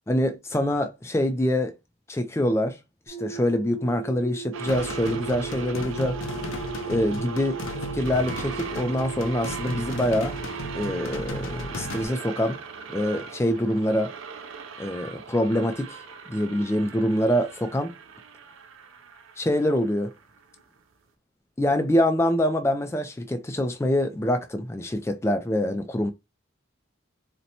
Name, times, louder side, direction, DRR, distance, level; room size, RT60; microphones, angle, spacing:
voice 1, 0.1-1.7 2.1-2.8 3.1-6.2 6.9-7.6 7.9-10.4 10.7-12.6 12.9-14.1 14.8-16.0 16.3-17.9 19.4-20.1 21.6-26.1, left 1 dB, 15° left, 0.3 m, -25 dB
sound 1, 3.1-11.3, right 6 dB, 45° right, 1.5 m, -38 dB
sound 2, 4.5-20.8, right 5 dB, 80° right, 0.5 m, -39 dB
sound 3, 4.7-12.0, left 1 dB, 80° left, 0.6 m, -36 dB
4.0 x 2.2 x 2.7 m
head